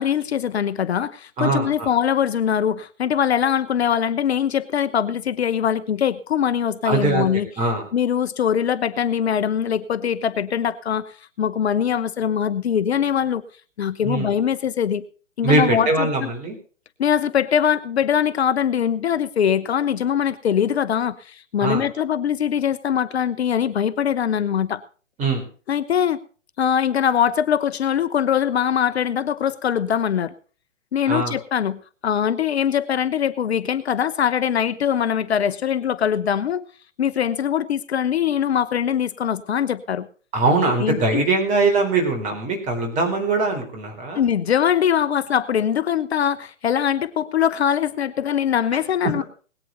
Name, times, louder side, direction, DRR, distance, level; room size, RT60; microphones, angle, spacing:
voice 1, 0.0-13.4 13.8-15.0 15.4-16.3 17.0-24.8 25.7-26.2 26.6-30.3 30.9-36.6 37.0-40.1 40.8-41.2 44.1-49.2, left 8 dB, 55° left, 15 dB, 1.0 m, -22 dB
voice 2, 1.4-1.9 6.8-7.3 7.6-7.9 14.0-14.3 15.4-16.6 21.6-21.8 25.2-25.4 31.1-31.3 40.3-44.2 49.0-49.2, right 3 dB, 20° right, 5 dB, 4.0 m, -21 dB
21.0 x 9.3 x 3.9 m, 0.40 s
figure-of-eight pair, 130°, 37 cm